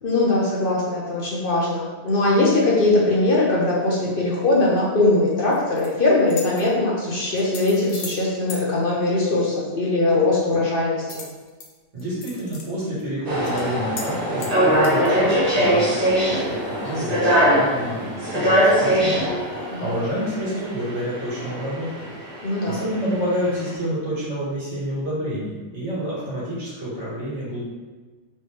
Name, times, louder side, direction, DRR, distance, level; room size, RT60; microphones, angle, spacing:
voice 1, 0.0-11.2 19.7-19.8 22.4-22.8, left 2 dB, 50° left, -4 dB, 1.0 m, -21 dB
sound 1, 5.5-5.9 6.3-6.6 7.4-8.2 8.5-8.6 11.1-11.7 12.0-12.7 13.0-13.1 13.4-13.6 14.0-14.1 14.4-15.1, left 4 dB, 70° left, 1.1 m, -36 dB
voice 2, 11.9-16.0 16.3-21.9 22.7-27.6, equal, 70° right, -8 dB, 2.0 m, -28 dB
sound 2, 13.2-23.7, equal, 30° right, 1.4 m, -22 dB
4.3 x 3.3 x 3.3 m, 1.3 s
omnidirectional pair, 1.2 m